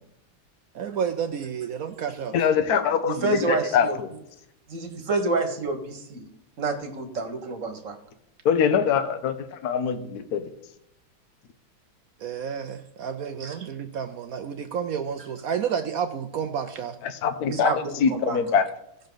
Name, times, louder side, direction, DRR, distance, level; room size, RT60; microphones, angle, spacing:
voice 1, 0.7-2.3 9.9-10.0 12.2-17.0, right 7 dB, 70° right, 7 dB, 0.8 m, -30 dB
voice 2, 2.3-4.1 8.4-10.5 17.0-17.7 18.0-18.7, left 7 dB, 60° left, 10 dB, 1.2 m, -23 dB
voice 3, 3.0-4.0 4.7-6.2 6.6-8.0 13.4-13.5 17.5-18.4, right 3 dB, 40° right, 4 dB, 1.5 m, -28 dB
17.0 x 6.5 x 3.9 m, 0.78 s
omnidirectional pair, 2.2 m